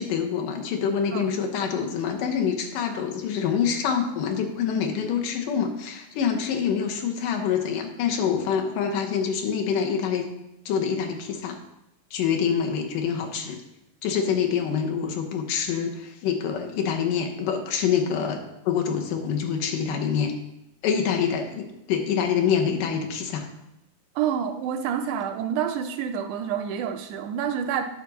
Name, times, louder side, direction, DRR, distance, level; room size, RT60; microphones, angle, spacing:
voice 1, 0.0-10.3 10.7-11.6 12.1-13.6 14.0-20.3 20.8-23.5, left 7 dB, 85° left, 3 dB, 2.6 m, -26 dB
voice 2, 24.1-27.9, right 8 dB, 80° right, 7 dB, 1.8 m, -28 dB
9.3 x 6.2 x 4.1 m, 0.87 s
omnidirectional pair, 3.8 m